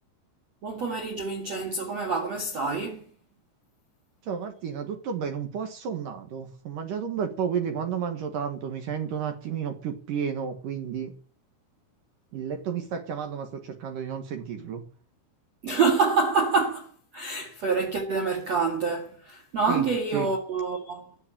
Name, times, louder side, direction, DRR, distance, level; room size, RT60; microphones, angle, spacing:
voice 1, 0.6-3.0 15.6-21.1, right 4 dB, 45° right, 2.5 m, -27 dB
voice 2, 4.3-11.1 12.3-14.8 19.7-19.9 20.1-20.3, right 7 dB, 60° right, 2.3 m, -32 dB
13.0 x 8.0 x 8.8 m
omnidirectional pair, 5.9 m